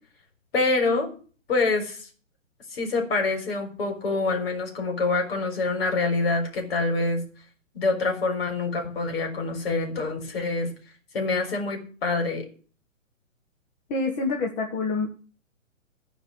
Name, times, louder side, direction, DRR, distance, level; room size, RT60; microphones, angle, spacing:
voice 1, 0.5-1.1 1.5-2.1 2.7-7.3 7.7-10.7 11.1-12.5, left 3 dB, 50° left, 4 dB, 4.3 m, -26 dB
voice 2, 13.9-15.1, left 3 dB, 20° left, 2 dB, 1.3 m, -27 dB
14.5 x 5.2 x 9.1 m, 0.39 s
figure-of-eight pair, 125°, 39 cm